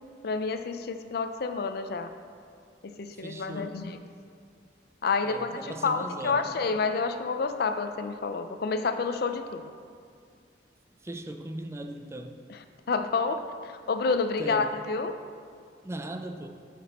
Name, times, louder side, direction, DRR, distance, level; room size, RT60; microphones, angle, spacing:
voice 1, 0.2-2.1 2.8-4.0 5.0-9.7 12.9-15.2, left 4 dB, 60° left, 9 dB, 0.5 m, -29 dB
voice 2, 3.1-3.9 5.2-6.5 11.0-12.4 14.4-14.7 15.8-16.5, right 1 dB, 15° right, 6 dB, 0.4 m, -38 dB
9.2 x 6.0 x 4.2 m, 2.2 s
head